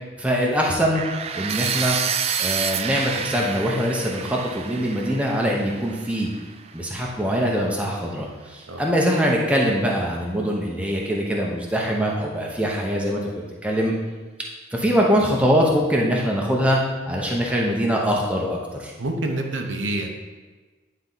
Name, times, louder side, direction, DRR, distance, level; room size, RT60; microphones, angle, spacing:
voice 1, 0.2-1.0 1.3-2.0 2.4-6.3 6.7-8.3 8.5-13.2 13.6-13.9 14.7-16.8 17.1-18.9, equal, 5° right, -2 dB, 0.8 m, -22 dB
sound 1, 0.9-6.9, right 7 dB, 30° right, 0.3 m, -29 dB
voice 2, 19.0-20.1, right 2 dB, 85° right, 3 dB, 0.9 m, -27 dB
9.5 x 4.3 x 4.0 m, 1.3 s
head